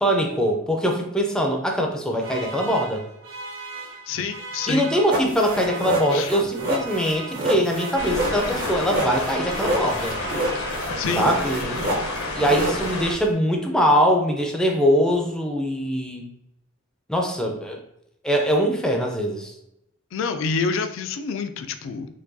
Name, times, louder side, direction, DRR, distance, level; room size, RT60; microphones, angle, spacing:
voice 1, 0.0-3.0 4.7-10.2 11.2-12.1 12.3-16.3 17.1-17.8 18.2-19.5, equal, 5° left, 1 dB, 0.4 m, -22 dB
sound 1, 2.2-11.2, right 3 dB, 80° right, 1.0 m, -38 dB
voice 2, 4.1-4.9 6.1-6.3 11.0-11.3 20.1-22.1, left 5 dB, 65° left, 9 dB, 0.3 m, -27 dB
sound 2, 5.1-13.3, right 1 dB, 45° right, 0.7 m, -28 dB
sound 3, 8.0-13.1, left 2 dB, 85° left, 0.8 m, -30 dB
4.6 x 2.2 x 2.6 m, 0.83 s
head